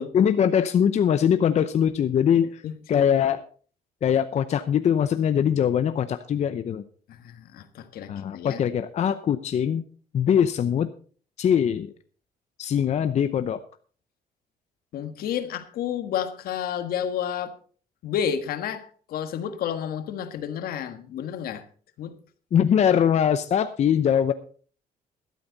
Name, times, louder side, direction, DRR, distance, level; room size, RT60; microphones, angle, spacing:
voice 1, 0.1-2.6 2.9-3.5 4.0-6.8 8.1-9.8 10.1-10.9 11.4-11.9 12.6-13.6 22.5-24.3, left 8 dB, 50° left, 10 dB, 0.7 m, -22 dB
voice 2, 2.6-3.0 7.1-8.6 14.9-17.6 18.0-21.6 22.0-22.1, left 9 dB, 75° left, 9 dB, 1.5 m, -31 dB
12.5 x 12.0 x 4.0 m, 0.42 s
cardioid pair, 120°, 15 cm